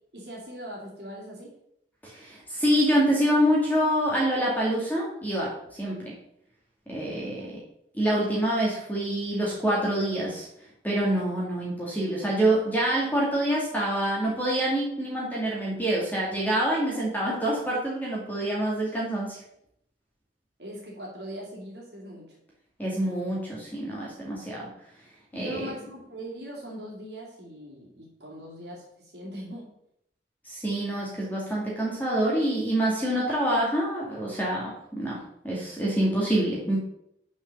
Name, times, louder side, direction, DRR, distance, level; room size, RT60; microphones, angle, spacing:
voice 1, 0.1-1.5 7.4-7.5 20.6-22.4 25.3-29.7, equal, 70° right, -4 dB, 2.2 m, -41 dB
voice 2, 2.0-6.1 6.9-7.6 7.9-10.5 10.8-19.4 22.8-24.7 25.3-25.7 30.4-36.8, right 1 dB, 10° left, -4 dB, 1.8 m, -26 dB
6.3 x 4.9 x 6.7 m, 0.75 s
head